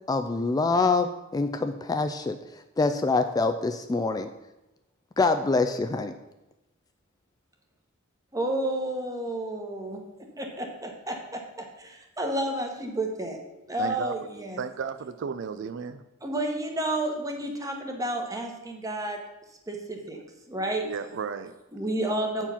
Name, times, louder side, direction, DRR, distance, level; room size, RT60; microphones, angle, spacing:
voice 1, 0.1-4.3 5.2-6.1, left 3 dB, 20° left, 8 dB, 0.3 m, -25 dB
voice 2, 8.3-10.0 10.4-13.4 13.7-14.6 16.2-19.2 19.7-20.2 20.5-20.9 21.7-22.5, right 1 dB, 15° right, 2 dB, 1.2 m, -31 dB
voice 3, 13.8-14.1 14.6-16.0 20.8-21.6, right 6 dB, 60° right, 10 dB, 0.4 m, -34 dB
8.7 x 4.6 x 5.7 m, 0.96 s
head